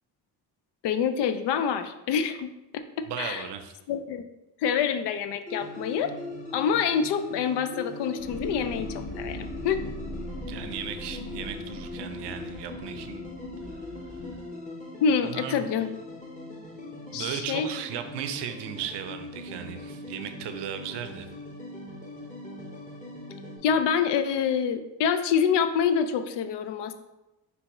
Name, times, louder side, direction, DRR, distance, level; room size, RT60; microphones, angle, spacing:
voice 1, 0.8-3.5 3.9-4.2 4.6-6.2 6.5-9.8 15.0-15.9 17.1-17.7 23.6-26.9, left 7 dB, 70° left, 10 dB, 0.5 m, -26 dB
voice 2, 3.1-3.7 10.5-13.2 15.3-15.7 17.1-21.3, right 9 dB, 70° right, 8 dB, 0.6 m, -36 dB
sound 1, 5.5-23.6, left 2 dB, 20° left, 1.1 m, -40 dB
sound 2, 8.2-14.4, left 1 dB, 35° left, 0.9 m, -40 dB
4.1 x 3.4 x 3.0 m, 0.99 s
cardioid pair, 75°, 43 cm